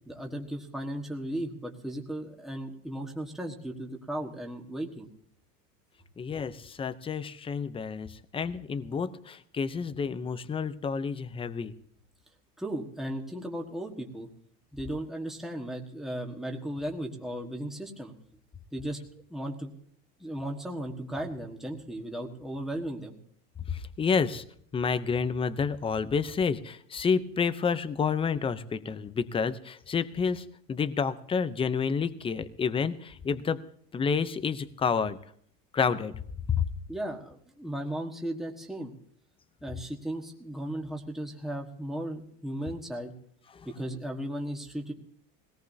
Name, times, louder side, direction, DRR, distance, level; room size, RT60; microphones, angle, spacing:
voice 1, 0.1-5.1 12.6-14.3 14.7-18.1 18.7-19.0 19.3-19.7 20.2-23.1 36.9-38.9 39.6-43.1 43.6-44.9, right 1 dB, ahead, 0 dB, 1.4 m, -36 dB
voice 2, 6.2-11.7 23.7-24.4 24.7-33.6 33.9-35.2 35.7-36.2 36.5-36.6 43.6-43.7, left 6 dB, 15° left, 14 dB, 0.6 m, -29 dB
21.0 x 18.0 x 2.7 m, 0.64 s
cardioid pair, 145°, 37 cm